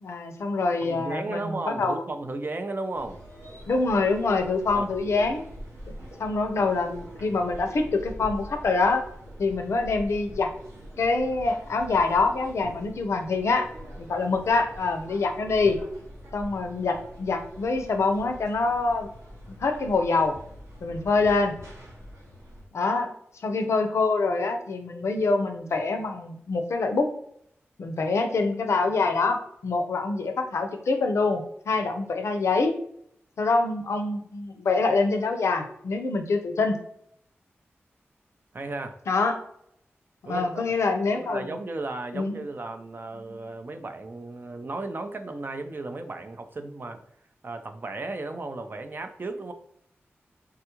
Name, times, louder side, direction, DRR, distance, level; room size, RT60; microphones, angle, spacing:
voice 1, 0.0-2.0 3.7-5.4 5.9-9.0 9.4-10.5 11.0-13.7 14.0-15.8 16.3-19.1 19.5-20.3 20.8-21.5 22.7-23.1 23.4-27.1 27.8-32.8 33.4-36.8 39.1-39.4 40.2-41.5 42.1-42.4, left 3 dB, 75° left, 5 dB, 0.5 m, -25 dB
voice 2, 0.8-3.2 4.7-5.1 38.5-39.0 40.2-40.8 41.1-47.0 47.4-49.5, right 2 dB, 45° right, 8 dB, 0.4 m, -35 dB
sound 1, 2.9-22.6, equal, 85° right, 0.9 m, -44 dB
3.5 x 2.3 x 2.9 m, 0.69 s
cardioid pair, 45°, 5 cm